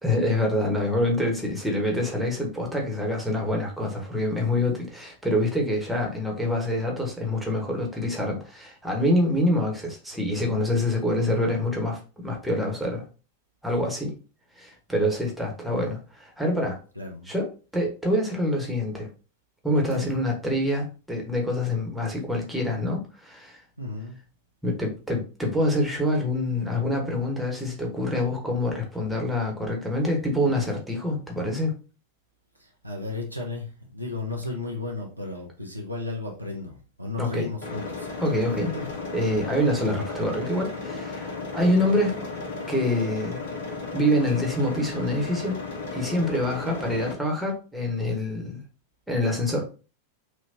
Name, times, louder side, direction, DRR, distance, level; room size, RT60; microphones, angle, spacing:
voice 1, 0.0-13.0 13.6-14.1 14.6-16.8 17.2-19.1 19.6-23.6 24.6-31.7 37.2-37.5 38.2-38.7 39.1-42.2 42.7-43.4 43.9-45.6 45.9-48.6 49.1-49.6, left 1 dB, ahead, 1.4 m, -26 dB
voice 2, 11.1-11.6 17.0-17.3 19.8-20.2 23.8-24.2 32.6-33.7 33.9-38.2 38.7-38.8, left 2 dB, 90° right, 0.9 m, -34 dB
sound 1, 37.6-47.1, left 3 dB, 55° left, 1.1 m, -34 dB
6.1 x 2.6 x 2.7 m
figure-of-eight pair, 90°, 0 cm